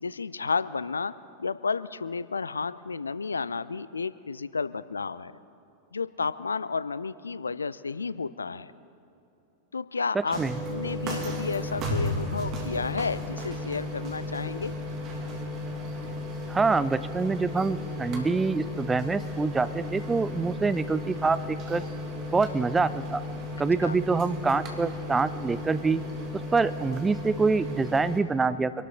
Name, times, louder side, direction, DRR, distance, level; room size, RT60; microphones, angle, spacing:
voice 1, 0.0-1.1 1.4-5.3 5.9-8.7 9.7-10.4 10.7-14.7 23.8-24.0, left 4 dB, 75° left, 16 dB, 0.4 m, -32 dB
sound 1, 10.3-28.2, left 1 dB, 35° right, 2.4 m, -34 dB
voice 2, 16.5-21.8 22.3-23.2 23.6-26.0 26.5-28.7, right 4 dB, 15° right, 14 dB, 0.5 m, -26 dB
25.5 x 12.5 x 3.9 m, 2.8 s
figure-of-eight pair, 90°, 0 cm